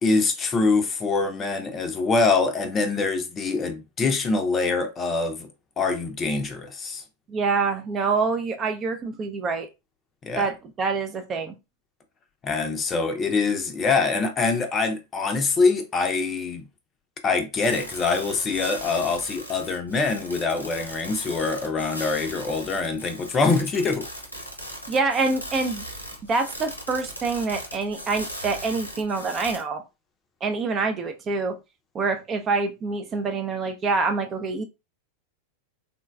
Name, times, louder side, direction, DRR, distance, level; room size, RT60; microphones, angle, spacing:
voice 1, 0.0-5.5 5.8-7.0 10.2-10.5 12.4-16.7 17.2-24.1, left 4 dB, 25° left, 0.6 m, -24 dB
voice 2, 7.3-9.7 10.4-11.5 24.9-25.8 26.3-29.8 30.4-31.6 31.9-34.6, right 4 dB, 25° right, 0.4 m, -26 dB
sound 1, 17.6-29.6, equal, 85° left, 0.9 m, -38 dB
3.7 x 2.2 x 2.2 m
figure-of-eight pair, 90°, 0 cm